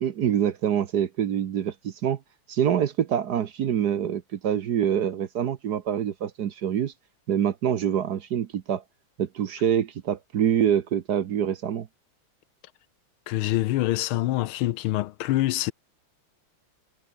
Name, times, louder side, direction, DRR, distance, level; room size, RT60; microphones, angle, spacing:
voice 1, 0.0-2.2 2.5-6.9 7.3-8.8 9.2-11.9, right 9 dB, 55° right, 1.3 m, -25 dB
voice 2, 13.3-15.7, left 16 dB, 80° left, 1.5 m, -25 dB
omnidirectional pair, 2.3 m